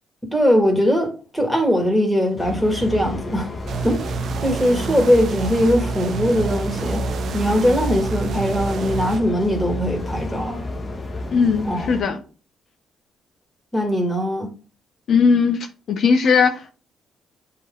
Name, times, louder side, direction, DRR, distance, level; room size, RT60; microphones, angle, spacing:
voice 1, 0.3-3.5 3.8-4.0 4.4-7.0 7.3-10.6 11.7-11.9 13.7-14.5, equal, 5° left, 2.3 m, -20 dB
sound 1, 2.4-12.0, left 2 dB, 30° left, 1.2 m, -31 dB
sound 2, 3.7-9.2, right 6 dB, 60° right, 0.6 m, -29 dB
voice 2, 11.3-12.2 15.1-16.7, left 5 dB, 60° left, 0.8 m, -18 dB
7.5 x 3.9 x 3.9 m
cardioid pair, 90°, 0 cm